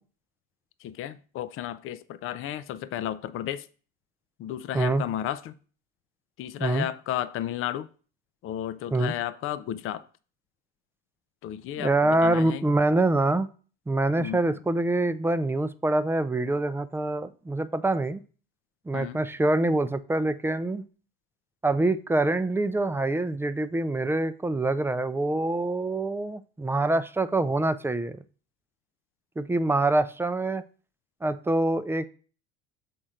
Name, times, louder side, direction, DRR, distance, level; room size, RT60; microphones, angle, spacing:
voice 1, 0.8-3.7 4.4-5.6 6.4-7.9 8.4-10.0 11.4-12.6 14.2-14.4 18.9-19.2, left 11 dB, 45° left, 0.5 m, -33 dB
voice 2, 11.8-13.5 13.9-18.2 18.9-20.8 21.6-28.2 29.4-30.6 31.2-32.0, right 2 dB, 10° right, 0.5 m, -25 dB
6.3 x 4.4 x 4.9 m
hypercardioid pair, 80°, 30 cm